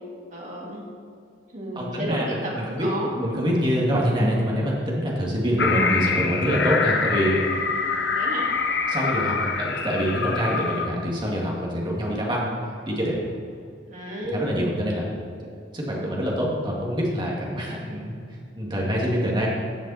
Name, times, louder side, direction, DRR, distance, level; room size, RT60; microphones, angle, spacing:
voice 1, 0.3-0.8 1.5-3.1 5.6-5.9 8.1-8.4 13.9-14.6, equal, 40° right, -3 dB, 2.5 m, -32 dB
voice 2, 1.8-7.4 8.9-12.5 12.9-13.2 14.3-15.0 15.7-18.2 18.6-19.5, equal, 25° right, -4 dB, 2.2 m, -25 dB
sound 1, 5.6-10.9, left 4 dB, 65° left, 0.9 m, -25 dB
14.5 x 7.2 x 4.3 m, 2.3 s
head